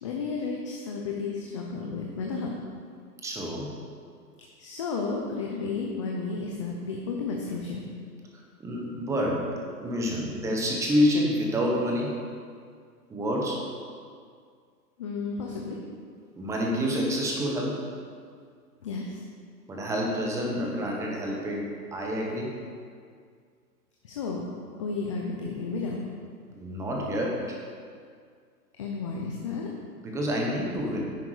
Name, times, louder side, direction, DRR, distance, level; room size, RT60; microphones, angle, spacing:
voice 1, 0.0-2.5 4.6-7.9 15.0-15.8 18.8-19.2 24.0-24.4 24.8-26.1 28.8-29.7, left 4 dB, 20° left, -1 dB, 0.5 m, -32 dB
voice 2, 3.2-3.8 8.3-9.5 9.8-12.2 13.1-13.7 16.3-17.8 19.7-22.6 26.5-27.6 30.0-31.0, equal, 5° right, -1 dB, 1.0 m, -28 dB
10.5 x 8.2 x 4.9 m, 2.1 s
hypercardioid pair, 150°, 48 cm